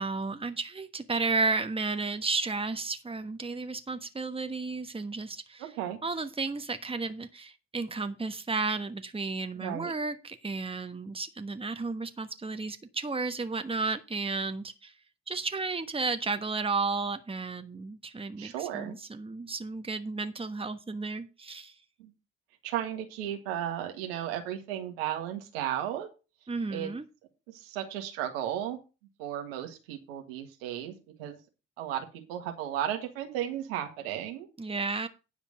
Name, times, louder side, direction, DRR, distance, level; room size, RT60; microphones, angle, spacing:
voice 1, 0.0-5.7 6.0-14.9 15.3-21.7 26.5-27.0 34.6-35.1, right 3 dB, 20° right, 1.3 m, -33 dB
voice 2, 5.6-6.0 9.5-9.9 18.4-18.9 22.0-22.1 22.6-26.1 26.7-26.9 27.5-28.8 29.2-31.4 31.8-34.5, right 11 dB, 85° right, 1.7 m, -34 dB
10.0 x 5.2 x 6.4 m
hypercardioid pair, 50°, 29 cm